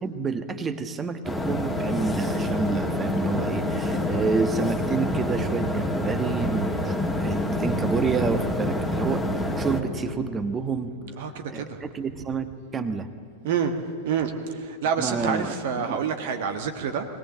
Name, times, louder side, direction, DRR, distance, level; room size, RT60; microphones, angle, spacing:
voice 1, 0.0-10.9 11.5-13.1 15.0-15.5 15.9-16.0, right 4 dB, 20° right, 10 dB, 1.3 m, -29 dB
sound 1, 1.2-9.8, left 1 dB, ahead, 2.3 m, -27 dB
voice 2, 11.2-11.8 13.4-13.7 14.0-17.1, right 7 dB, 55° right, 7 dB, 1.4 m, -27 dB
23.0 x 18.0 x 7.8 m, 2.5 s
figure-of-eight pair, 90°, 0 cm